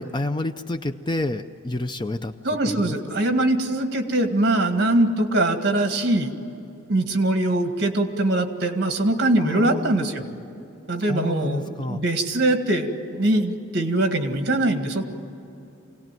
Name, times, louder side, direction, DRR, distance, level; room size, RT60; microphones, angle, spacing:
voice 1, 0.0-2.3 2.6-3.0 9.4-10.1 11.1-12.0, left 2 dB, 20° left, 9 dB, 0.5 m, -29 dB
voice 2, 2.4-6.3 6.9-10.2 10.9-15.0, right 1 dB, 50° right, 6 dB, 1.9 m, -22 dB
25.0 x 18.0 x 9.2 m, 2.9 s
head